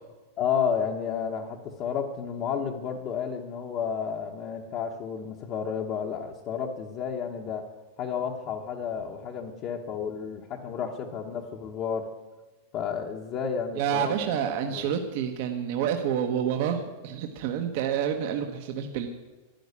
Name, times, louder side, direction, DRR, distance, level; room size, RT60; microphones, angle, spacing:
voice 1, 0.4-7.6 8.0-12.1 12.7-14.5 14.7-14.8, left 7 dB, 30° left, -1 dB, 1.0 m, -31 dB
voice 2, 13.7-19.1, right 9 dB, 45° right, 5 dB, 1.2 m, -28 dB
12.0 x 11.0 x 9.7 m, 1.2 s
supercardioid pair, 170°, 0 cm